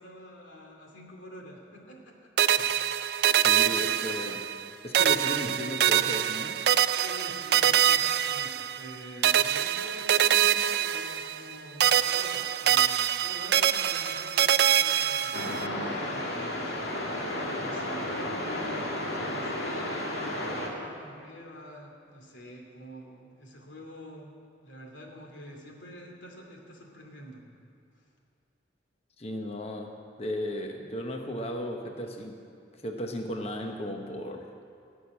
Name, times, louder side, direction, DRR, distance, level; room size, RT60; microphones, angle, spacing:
voice 1, 0.0-2.2 2.4-2.7 3.5-4.3 4.9-5.0 6.6-15.4 15.7-24.3 24.6-27.5, equal, 80° left, 0 dB, 2.6 m, -47 dB
sound 1, 2.4-4.7 4.9-8.9 9.2-11.5 11.8-15.7, right 10 dB, 55° right, 0.3 m, -25 dB
voice 2, 3.4-4.4 4.8-6.6 29.2-29.9 30.2-32.4 32.7-34.4, left 1 dB, 35° left, 3 dB, 1.0 m, -35 dB
sound 2, 15.3-20.7, left 1 dB, 65° left, 2.3 m, -32 dB
18.0 x 6.6 x 9.5 m, 2.4 s
head